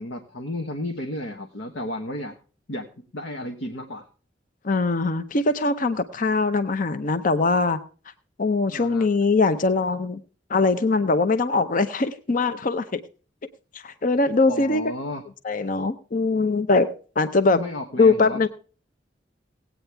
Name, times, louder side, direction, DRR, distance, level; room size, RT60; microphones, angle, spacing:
voice 1, 0.0-2.3 2.7-2.9 3.1-4.1 8.7-9.1 14.5-15.2 17.5-18.4, left 1 dB, 85° left, 4 dB, 1.2 m, -33 dB
voice 2, 4.6-7.8 8.4-10.2 10.5-13.0 13.7-14.8 15.4-16.9 17.2-17.6 18.0-18.5, left 3 dB, 50° left, 10 dB, 0.7 m, -21 dB
18.0 x 9.0 x 3.4 m, 0.38 s
head